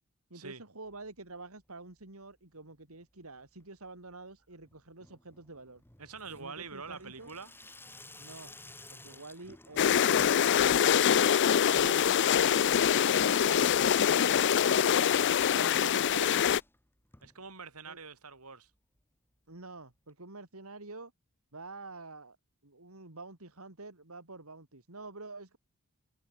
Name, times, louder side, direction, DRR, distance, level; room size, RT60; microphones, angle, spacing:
voice 1, 0.3-5.8 6.3-7.3 8.2-8.6 8.9-10.5 11.7-14.8 15.5-16.3 17.8-18.0 19.5-21.1 21.5-22.4 22.6-25.6, right 3 dB, 70° right, 3.1 m, -47 dB
Water tap faucet / Sink (filling or washing), 0.8-1.6 1.9-2.5 2.7-18.0 18.4-18.5 18.6-18.7 19.0-19.1 20.1-20.2, left 2 dB, 10° left, 4.3 m, -57 dB
voice 2, 6.0-7.5 11.7-12.1 15.6-15.9 17.2-18.7, right 5 dB, 90° right, 5.5 m, -45 dB
sound 1, 9.8-16.6, left 8 dB, 55° left, 0.4 m, -24 dB
head